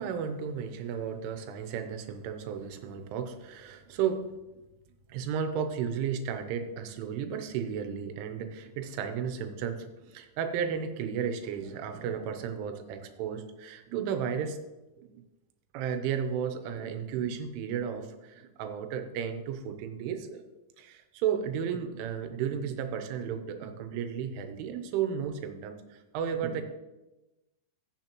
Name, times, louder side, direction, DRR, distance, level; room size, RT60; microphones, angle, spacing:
voice 1, 0.0-4.3 5.1-14.6 15.0-15.2 15.7-20.4 20.8-26.6, right 7 dB, 85° right, 8 dB, 3.3 m, -33 dB
15.0 x 7.1 x 3.0 m, 1.0 s
omnidirectional pair, 5.4 m